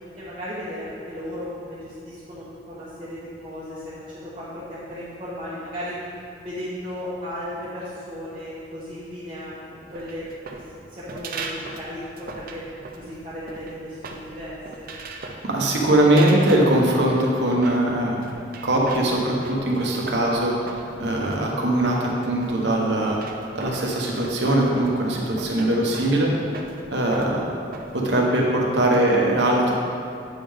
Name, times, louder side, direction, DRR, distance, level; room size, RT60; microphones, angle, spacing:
voice 1, 0.2-6.0 6.4-10.6 10.9-12.6 13.0-14.9, equal, 30° right, -11 dB, 1.2 m, -35 dB
sound 1, 9.9-28.0, right 3 dB, 50° right, 0.5 m, -39 dB
voice 2, 15.2-18.2 18.6-23.2 23.5-26.3 26.9-27.4 27.9-29.7, right 1 dB, 65° right, -2 dB, 1.1 m, -21 dB
8.4 x 5.3 x 3.6 m, 2.5 s
head